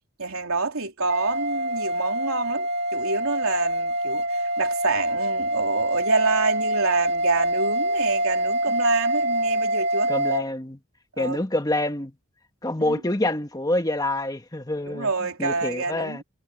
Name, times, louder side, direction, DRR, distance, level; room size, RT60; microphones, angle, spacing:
voice 1, 0.2-10.1 11.2-11.4 12.9-13.0 14.9-16.2, right 3 dB, 85° right, 3.4 m, -27 dB
sound 1, 1.1-10.4, right 1 dB, 50° right, 2.3 m, -25 dB
voice 2, 10.1-10.8 11.2-12.1 12.6-16.2, left 1 dB, 20° left, 1.5 m, -27 dB
head